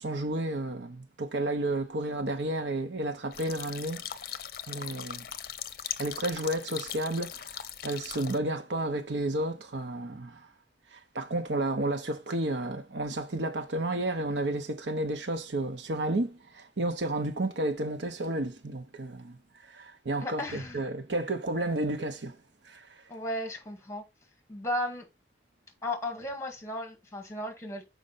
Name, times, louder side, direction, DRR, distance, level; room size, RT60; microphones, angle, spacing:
voice 1, 0.0-4.0 4.7-5.2 6.0-10.4 10.9-19.4 19.6-22.4 22.6-22.9, right 1 dB, 85° right, 0.9 m, -32 dB
sound 1, 3.3-8.4, left 10 dB, 55° left, 0.6 m, -40 dB
voice 2, 20.2-20.8 23.1-24.0 24.5-25.1 25.8-27.8, left 1 dB, 15° left, 1.8 m, -35 dB
6.4 x 5.0 x 4.1 m
head